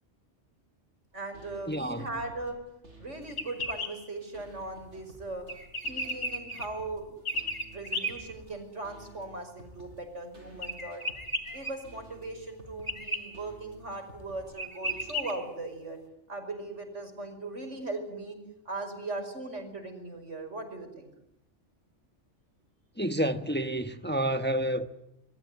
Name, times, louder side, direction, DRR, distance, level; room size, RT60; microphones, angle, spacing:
sound 1, 1.1-15.2, right 1 dB, 70° right, 6.7 m, -53 dB
voice 1, 1.1-2.6 3.0-5.5 5.9-7.4 7.7-11.0 11.5-16.0 16.3-18.4 18.7-21.1, right 2 dB, 90° right, 5.9 m, -39 dB
voice 2, 1.7-2.1 23.0-24.9, right 1 dB, 10° left, 1.1 m, -29 dB
sound 2, 3.3-3.9 5.5-6.7 7.3-8.1 10.6-11.7 12.9-13.2 14.2-14.3 14.6-15.3, equal, 45° left, 3.6 m, -33 dB
26.5 x 22.0 x 9.7 m
omnidirectional pair, 1.2 m